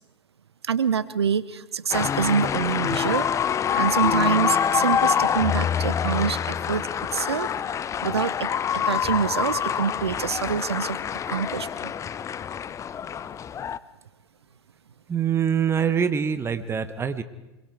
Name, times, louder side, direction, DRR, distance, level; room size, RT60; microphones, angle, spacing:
voice 1, 0.6-3.3 3.7-7.5 8.0-11.0 11.3-11.9, right 7 dB, 80° right, 16 dB, 0.8 m, -26 dB
sound 1, 1.9-13.8, left 8 dB, 20° left, 0.6 m, -26 dB
voice 2, 15.1-17.2, right 7 dB, 20° right, 11 dB, 1.3 m, -24 dB
25.0 x 22.5 x 4.8 m, 1.0 s
hypercardioid pair, 95°, 13 cm